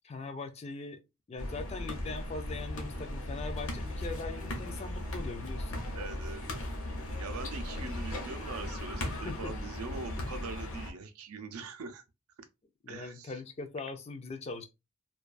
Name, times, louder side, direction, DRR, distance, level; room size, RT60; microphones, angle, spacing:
voice 1, 0.0-1.0 1.3-5.8 9.1-9.5 12.8-14.7, left 3 dB, 30° left, 0.3 m, -41 dB
sound 1, 1.4-10.9, left 1 dB, 70° left, 0.8 m, -37 dB
voice 2, 5.9-6.6 7.2-12.0 12.9-13.3, right 4 dB, 80° right, 0.5 m, -42 dB
2.3 x 2.2 x 2.4 m
head